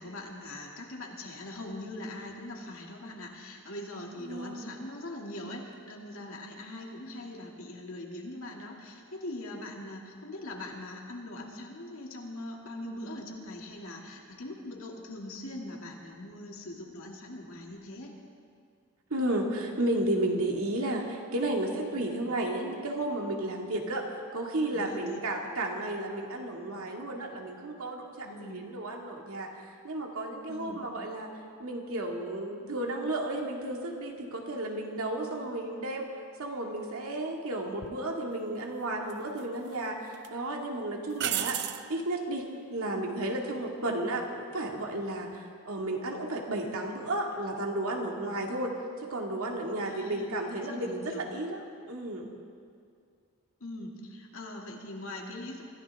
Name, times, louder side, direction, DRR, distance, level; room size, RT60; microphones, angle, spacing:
voice 1, 0.0-18.1 24.7-25.2 28.2-28.6 30.5-30.8 49.8-51.2 53.6-55.6, left 1 dB, 70° left, 0 dB, 2.3 m, -42 dB
voice 2, 4.2-4.8 19.1-24.0 24.3-29.5 29.8-31.3 31.6-36.1 36.4-41.6 41.9-48.7 49.0-52.4, right 1 dB, 85° right, 0 dB, 2.1 m, -33 dB
sound 1, 37.8-38.0 39.1-39.7 40.1-40.3 41.2-41.9 45.0-45.4, right 11 dB, 50° right, 0.5 m, -33 dB
25.0 x 15.0 x 3.5 m, 2.3 s
head